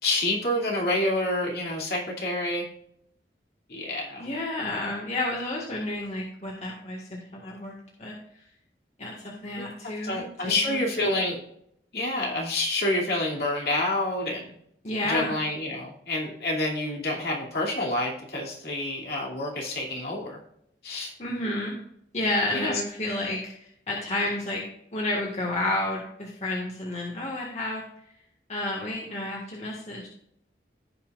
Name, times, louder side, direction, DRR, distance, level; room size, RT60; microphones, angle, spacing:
voice 1, 0.0-2.7 3.7-4.3 9.6-9.7 10.0-11.4 11.9-14.5 15.0-20.4 20.8-21.1 22.5-22.7, left 1 dB, 60° left, -2 dB, 2.7 m, -28 dB
voice 2, 4.2-8.1 9.0-11.1 14.8-15.3 21.2-21.8 22.1-24.6 24.9-27.8 28.5-30.1, left 1 dB, 40° left, -2 dB, 1.7 m, -31 dB
16.5 x 5.7 x 2.5 m, 0.72 s
head